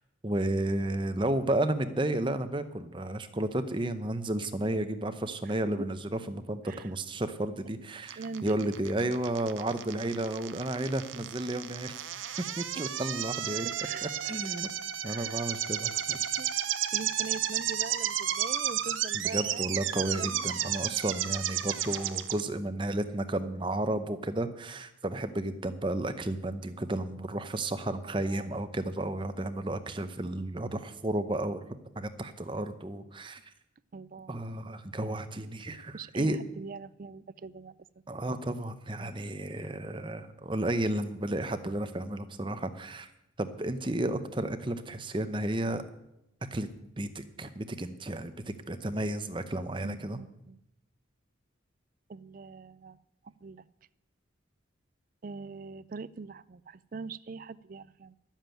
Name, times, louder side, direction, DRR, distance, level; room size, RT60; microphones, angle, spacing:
voice 1, 0.2-11.9 12.6-13.7 14.2-14.7 15.0-16.2 19.1-31.6 32.0-33.4 34.3-36.4 38.1-43.1 43.4-45.8 46.5-46.7 47.0-50.2, right 1 dB, 25° right, 9 dB, 0.8 m, -32 dB
voice 2, 8.1-8.6 13.5-14.2 15.0-15.4 16.4-16.5 16.9-20.5 28.0-28.5 33.9-34.4 35.9-37.8 49.8-50.6 52.1-53.0 53.2-53.7 55.2-58.2, right 4 dB, 45° right, 17 dB, 0.4 m, -43 dB
sound 1, 8.1-22.4, right 11 dB, 80° right, 0.7 m, -33 dB
11.5 x 7.4 x 9.1 m, 0.87 s
head